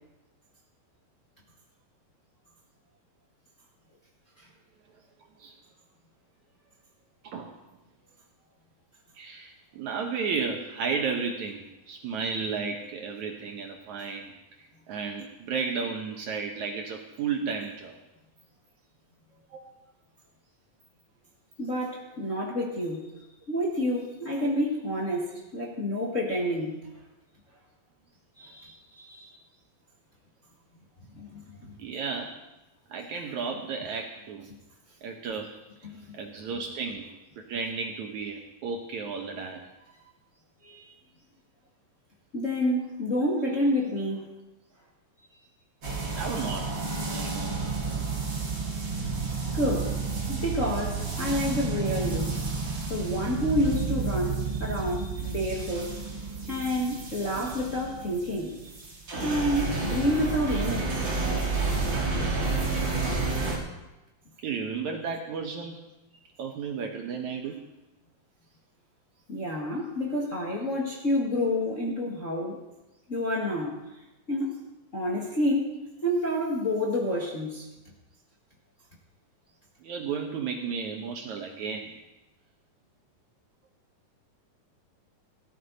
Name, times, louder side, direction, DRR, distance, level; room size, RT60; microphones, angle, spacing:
voice 1, 7.2-7.6 9.2-14.3 14.6-18.0 19.5-19.6 24.4-24.5 31.8-32.3 32.9-34.5 35.0-35.5 36.1-37.1 37.4-39.6 43.3-43.6 46.2-46.7 47.1-47.6 57.4-57.5 60.8-60.9 64.4-65.8 66.4-67.6 79.8-82.0, right 5 dB, 65° right, 3 dB, 2.1 m, -33 dB
voice 2, 21.6-23.0 23.5-26.8 28.4-29.3 31.1-31.7 35.8-36.0 40.6-40.8 42.3-44.3 49.5-50.0 50.3-52.4 52.9-56.0 56.5-58.7 59.2-61.1 69.3-72.6 73.1-73.8 74.3-74.6 74.9-75.7 76.0-77.7, left 1 dB, 30° left, -3 dB, 1.5 m, -29 dB
sound 1, 45.8-63.6, right 4 dB, 35° right, 3.0 m, -30 dB
17.5 x 13.5 x 4.1 m, 1.0 s
omnidirectional pair, 4.2 m